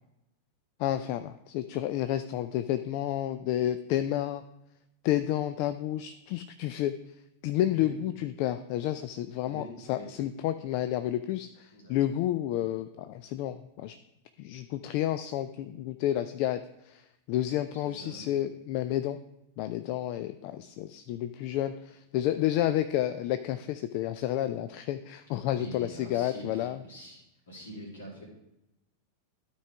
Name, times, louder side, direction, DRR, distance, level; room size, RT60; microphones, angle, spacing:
voice 1, 0.8-4.4 5.0-6.9 7.4-14.0 14.4-17.0 17.3-19.2 19.6-26.8, left 12 dB, 45° left, 11 dB, 0.3 m, -30 dB
voice 2, 9.4-10.1 11.7-12.0 17.7-18.3 25.3-27.2 27.5-28.3, equal, 65° left, -1 dB, 2.6 m, -45 dB
12.5 x 4.6 x 3.4 m, 0.88 s
figure-of-eight pair, 90°, 0 cm